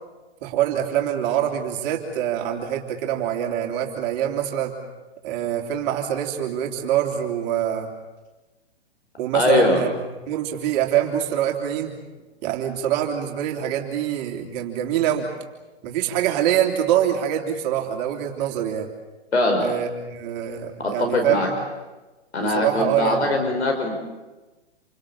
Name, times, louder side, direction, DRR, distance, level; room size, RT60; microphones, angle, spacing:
voice 1, 0.4-4.7 5.2-7.9 9.2-9.9 10.3-11.9 12.4-15.3 15.8-18.9 19.6-21.6 22.4-23.3, right 10 dB, 40° right, 1 dB, 3.4 m, -24 dB
voice 2, 9.3-9.8 19.3-19.7 20.8-21.5 22.3-24.0, left 2 dB, 85° left, 3 dB, 5.5 m, -21 dB
28.0 x 24.5 x 7.3 m, 1.2 s
hypercardioid pair, 130°, 32 cm